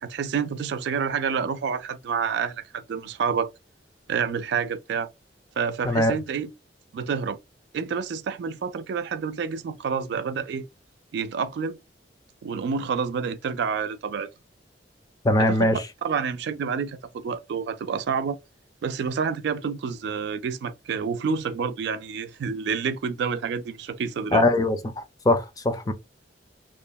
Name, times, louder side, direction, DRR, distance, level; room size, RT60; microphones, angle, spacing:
voice 1, 0.0-3.5 4.1-5.1 5.6-6.5 6.9-7.4 7.7-10.7 11.1-11.8 12.4-14.3 15.4-15.8 16.0-17.0 17.2-18.4 18.8-24.4, right 6 dB, 65° right, 0.3 m, -28 dB
voice 2, 5.8-6.2 15.2-15.8 24.3-25.9, left 1 dB, 20° left, 0.4 m, -22 dB
3.0 x 2.1 x 2.2 m
head